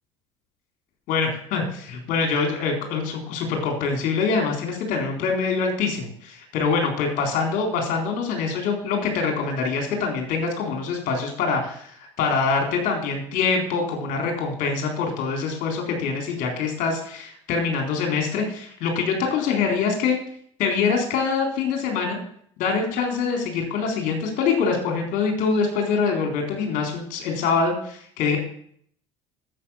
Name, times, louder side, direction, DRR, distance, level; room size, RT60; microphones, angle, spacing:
voice 1, 1.1-20.2 20.6-22.2 22.6-28.4, left 5 dB, 60° left, 3 dB, 4.1 m, -24 dB
11.0 x 8.3 x 7.2 m, 0.63 s
figure-of-eight pair, 60°, 16 cm